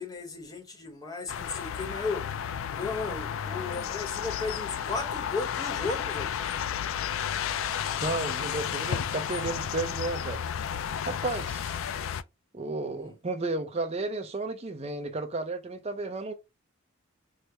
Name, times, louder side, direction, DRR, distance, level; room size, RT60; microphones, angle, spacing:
voice 1, 0.0-2.2 2.8-6.3 12.9-13.2, left 3 dB, 15° left, 0.9 m, -35 dB
sound 1, 1.3-12.2, left 8 dB, 65° left, 0.3 m, -32 dB
voice 2, 8.0-10.4 11.0-11.8 12.5-16.3, right 3 dB, 30° right, 0.4 m, -33 dB
4.7 x 2.1 x 2.7 m
head